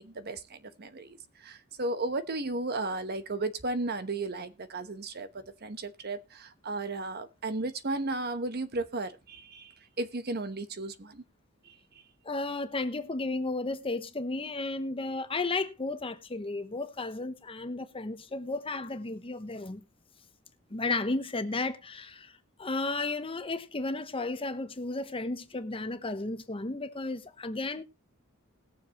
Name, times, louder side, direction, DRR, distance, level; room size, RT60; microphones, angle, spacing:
voice 1, 0.0-11.2 11.6-11.8, right 2 dB, 50° right, 1.0 m, -35 dB
voice 2, 12.2-19.8 20.7-22.3 22.6-27.8, left 3 dB, 25° left, 0.9 m, -33 dB
20.0 x 7.0 x 3.0 m
head